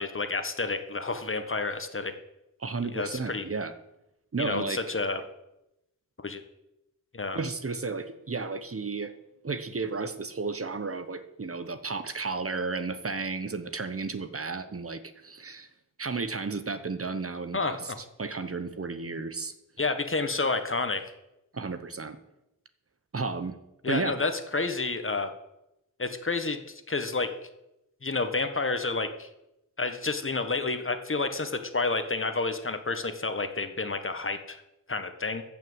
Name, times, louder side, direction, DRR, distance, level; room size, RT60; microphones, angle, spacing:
voice 1, 0.0-2.1 2.8-3.4 4.4-5.2 6.2-6.4 7.1-7.4 17.5-18.0 19.8-21.0 23.8-25.3 26.0-27.3 28.0-29.3 29.8-34.6 34.9-35.4, left 3 dB, 40° left, 8 dB, 1.4 m, -30 dB
voice 2, 2.6-3.7 4.3-4.8 7.3-9.1 9.4-15.7 16.0-19.5 21.5-22.2 23.1-23.5 23.9-24.2, right 4 dB, 40° right, 10 dB, 1.0 m, -33 dB
14.5 x 6.0 x 7.9 m, 0.90 s
wide cardioid pair, 90°, 34 cm